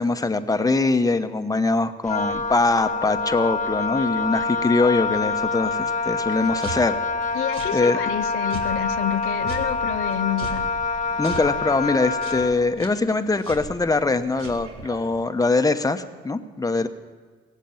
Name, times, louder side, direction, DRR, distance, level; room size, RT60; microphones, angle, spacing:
voice 1, 0.0-7.0 7.7-8.0 11.2-16.9, left 3 dB, 15° left, 9 dB, 1.0 m, -22 dB
Wind instrument woodwind instrument, 2.0-12.6, left 4 dB, 35° left, 1.1 m, -26 dB
sound 1, 6.3-15.2, right 4 dB, 80° right, 1.9 m, -40 dB
voice 2, 7.3-10.7, left 13 dB, 90° left, 11 dB, 0.5 m, -28 dB
17.0 x 7.4 x 8.9 m, 1.5 s
supercardioid pair, 70°, 21 cm